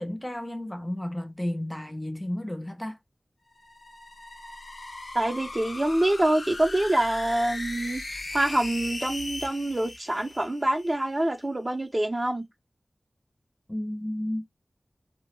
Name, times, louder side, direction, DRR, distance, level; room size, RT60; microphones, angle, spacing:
voice 1, 0.0-3.0 13.7-14.4, left 1 dB, 15° left, 0.5 m, -32 dB
sound 1, 3.5-11.0, left 2 dB, 70° left, 0.5 m, -38 dB
voice 2, 5.1-8.0 8.3-12.5, right 1 dB, 30° right, 0.5 m, -26 dB
2.2 x 2.0 x 2.9 m
wide cardioid pair, 60°, 0 cm